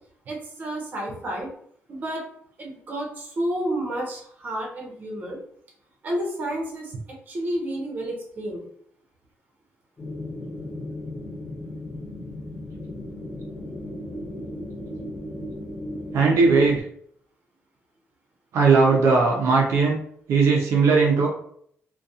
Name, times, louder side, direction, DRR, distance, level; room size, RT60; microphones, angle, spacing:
voice 1, 0.3-1.5 1.9-2.2 2.6-5.4 6.0-6.9 7.3-8.6, right 1 dB, 40° right, -1 dB, 0.8 m, -30 dB
sound 1, 10.0-16.8, left 1 dB, 20° left, 0.7 m, -35 dB
voice 2, 16.1-16.8 18.5-20.0 20.3-21.3, right 4 dB, 85° right, -1 dB, 0.5 m, -18 dB
2.3 x 2.2 x 2.6 m, 0.64 s
wide cardioid pair, 160°, 5 cm